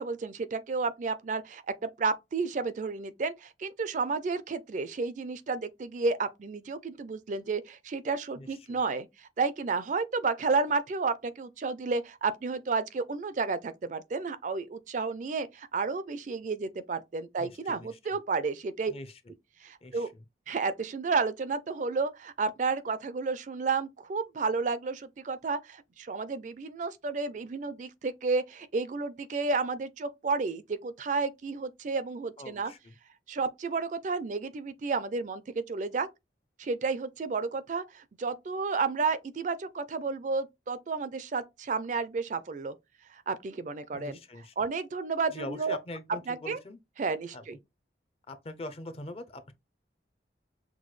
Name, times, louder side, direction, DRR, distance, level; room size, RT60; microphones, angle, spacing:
voice 1, 0.0-18.9 19.6-20.1 20.5-32.7 33.3-36.1 36.6-42.7 43.1-44.2 44.6-45.8 46.3-46.6 47.0-47.6, right 4 dB, 45° right, 0.4 m, -31 dB
voice 2, 8.4-8.8 17.4-18.0 18.9-19.2 19.8-20.2 32.4-32.9 43.9-44.5 45.3-46.8 47.3-47.4 48.3-49.5, left 1 dB, 35° left, 0.5 m, -43 dB
5.9 x 2.2 x 3.1 m
head